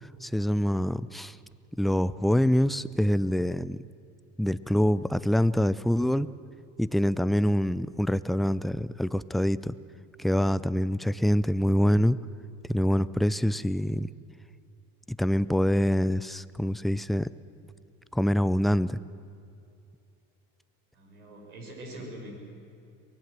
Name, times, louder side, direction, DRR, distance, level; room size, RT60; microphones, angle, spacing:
voice 1, 0.2-1.4 1.8-3.8 4.4-6.3 6.8-9.8 10.2-12.2 12.7-14.1 15.1-17.3 18.1-19.0, equal, ahead, 16 dB, 0.4 m, -25 dB
voice 2, 20.9-22.4, right 1 dB, 85° right, 1 dB, 5.4 m, -43 dB
23.5 x 18.5 x 7.5 m, 2.5 s
hypercardioid pair, 75°, 42 cm